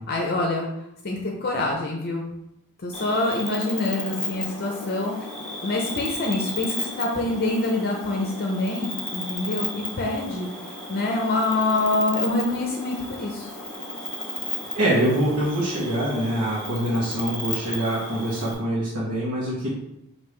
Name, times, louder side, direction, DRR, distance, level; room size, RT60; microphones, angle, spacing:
voice 1, 0.1-0.7 1.0-2.3 2.8-5.3 5.6-10.5 10.9-13.5, left 2 dB, 45° left, 0 dB, 0.5 m, -26 dB
Cricket, 2.9-18.5, left 1 dB, 5° left, 0.7 m, -34 dB
voice 2, 14.7-19.7, right 1 dB, 85° right, -7 dB, 1.0 m, -24 dB
5.3 x 2.6 x 3.2 m, 0.82 s
head